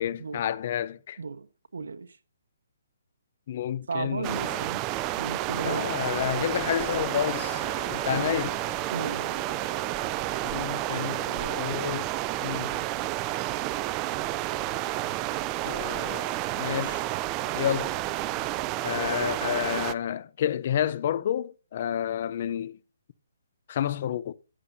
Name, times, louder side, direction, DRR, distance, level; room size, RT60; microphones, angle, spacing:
voice 1, 0.0-1.2 3.5-4.6 5.6-7.6 7.9-8.5 10.4-12.1 12.4-12.8 15.6-17.0 17.6-17.9 18.8-22.8 23.7-24.3, left 10 dB, 40° left, 0.6 m, -30 dB
voice 2, 1.7-2.2 3.9-4.8 5.2-5.8 8.1-8.5 8.9-9.4, right 5 dB, 85° right, 1.2 m, -34 dB
sound 1, 4.2-19.9, right 15 dB, 20° right, 0.4 m, -30 dB
Wind instrument woodwind instrument, 6.6-11.7, left 7 dB, 70° left, 4.0 m, -45 dB
14.0 x 10.0 x 2.7 m
hypercardioid pair, 160°, 0 cm